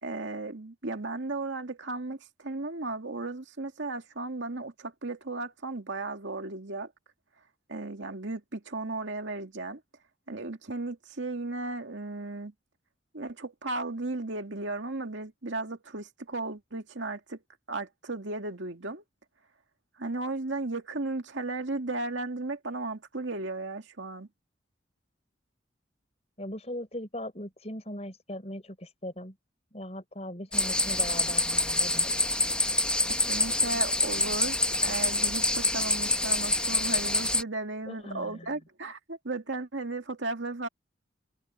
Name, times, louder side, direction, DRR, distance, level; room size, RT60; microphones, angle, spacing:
voice 1, 0.0-6.9 7.7-9.8 10.3-12.5 13.1-17.4 17.7-19.0 20.0-24.3 33.1-40.7, right 2 dB, 80° right, 2.1 m, -35 dB
voice 2, 26.4-29.3 29.7-32.3 37.9-38.5, left 1 dB, 35° left, 5.4 m, -39 dB
sound 1, 30.5-37.4, left 2 dB, 5° left, 1.0 m, -26 dB
head